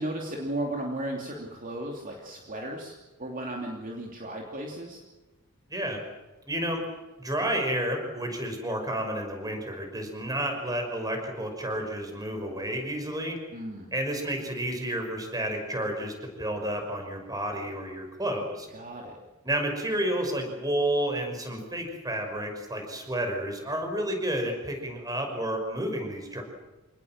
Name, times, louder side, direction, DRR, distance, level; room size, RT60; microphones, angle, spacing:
voice 1, 0.0-2.9 3.2-5.0 13.5-13.9 18.7-19.2, right 1 dB, 35° right, 0 dB, 3.1 m, -35 dB
voice 2, 5.7-6.0 6.5-6.8 7.2-13.4 13.9-18.7 19.4-26.4, right 1 dB, 15° right, 4 dB, 5.8 m, -31 dB
27.5 x 19.5 x 7.5 m, 1.2 s
head